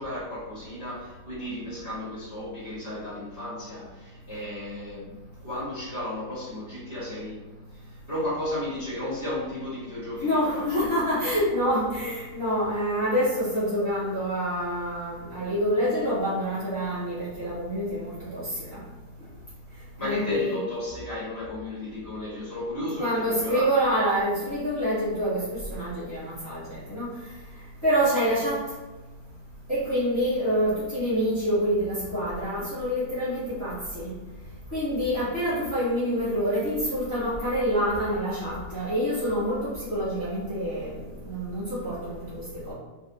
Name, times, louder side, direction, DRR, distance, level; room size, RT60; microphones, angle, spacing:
voice 1, 0.0-7.4 7.7-10.8 20.0-23.7, left 1 dB, 10° right, -9 dB, 1.4 m, -34 dB
voice 2, 10.2-18.8 20.0-20.6 23.0-27.2 27.8-28.7 29.7-34.1 34.7-42.7, equal, 20° left, -12 dB, 1.4 m, -27 dB
3.2 x 3.2 x 3.0 m, 1.2 s
omnidirectional pair, 1.8 m